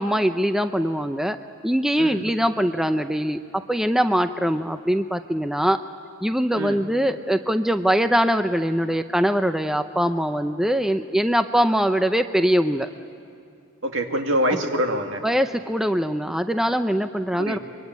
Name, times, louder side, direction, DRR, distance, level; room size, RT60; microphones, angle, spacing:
voice 1, 0.0-1.4 1.6-5.8 6.2-12.9 14.5-14.6 15.2-17.6, equal, ahead, 8 dB, 0.6 m, -22 dB
voice 2, 13.8-15.2 17.4-17.6, equal, 70° right, 4 dB, 2.2 m, -24 dB
25.0 x 23.0 x 9.6 m, 2.5 s
head